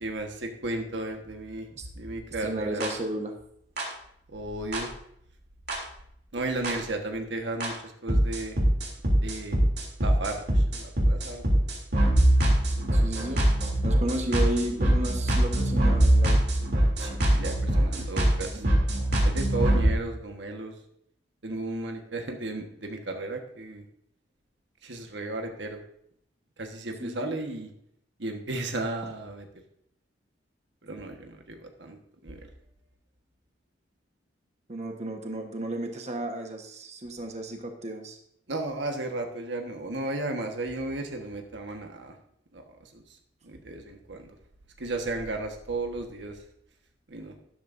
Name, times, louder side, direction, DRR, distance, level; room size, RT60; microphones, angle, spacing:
voice 1, 0.0-1.7 1.9-2.8 4.3-4.9 6.3-8.5 9.2-9.6 10.0-11.4 17.0-18.6 19.2-20.7 21.4-23.8 24.8-25.8 26.6-27.7 28.2-29.4 30.8-32.0 32.2-32.4 38.5-42.1 42.5-42.6 42.9-43.0 43.4-44.3 44.8-46.3 47.1-47.3, right 2 dB, 85° right, 4 dB, 1.4 m, -34 dB
voice 2, 2.4-3.3 12.9-13.4 13.8-16.4 27.0-27.4 34.7-38.2, right 1 dB, 40° right, 3 dB, 1.3 m, -33 dB
sound 1, 2.8-2.9 3.8-3.9 4.7-4.8 5.7-5.8 6.6-6.7 7.6-7.7 8.1-19.9, right 1 dB, 65° right, 3.1 m, -23 dB
13.0 x 11.0 x 2.7 m, 0.71 s
head